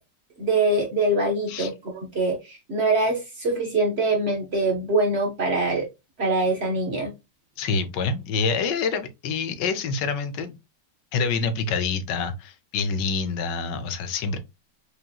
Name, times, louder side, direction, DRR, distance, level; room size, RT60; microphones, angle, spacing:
voice 1, 0.4-5.9 6.2-7.1, right 2 dB, 50° right, 0.9 m, -24 dB
voice 2, 7.6-10.6 11.1-14.4, left 5 dB, 85° left, 1.3 m, -26 dB
5.0 x 2.9 x 2.3 m
omnidirectional pair, 1.9 m